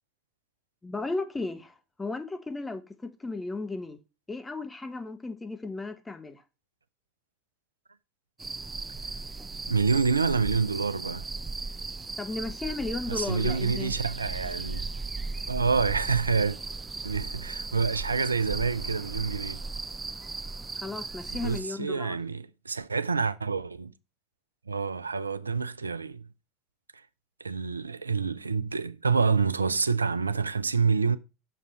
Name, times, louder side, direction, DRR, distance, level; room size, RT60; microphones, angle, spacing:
voice 1, 0.8-4.0 4.3-6.4 12.2-13.9 20.8-22.2, left 3 dB, 15° left, 1.0 m, -35 dB
sound 1, 8.4-21.6, right 3 dB, 15° right, 0.4 m, -36 dB
voice 2, 9.7-11.3 13.1-14.9 15.5-16.6 17.0-19.6 21.3-23.9 24.7-26.3 27.4-31.2, right 5 dB, 85° right, 0.4 m, -27 dB
6.5 x 4.9 x 4.3 m
figure-of-eight pair, 75°, 0 cm